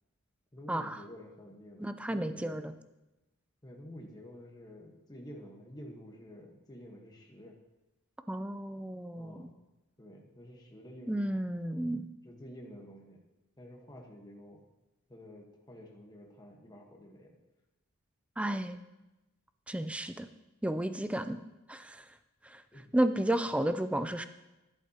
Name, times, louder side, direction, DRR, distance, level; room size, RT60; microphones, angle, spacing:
voice 1, 0.5-2.6 3.6-7.6 9.1-9.5 10.0-11.3 12.2-13.2 13.6-14.6 15.1-17.4 22.7-22.9 23.2-23.3, equal, 20° left, 0 dB, 1.2 m, -50 dB
voice 2, 1.8-2.7 8.3-9.5 11.1-12.1 18.4-18.8 19.7-20.3 20.6-21.4 21.7-22.0 22.5-22.6 22.9-24.2, right 1 dB, 5° right, 10 dB, 0.4 m, -32 dB
11.5 x 10.5 x 2.9 m, 1.0 s
head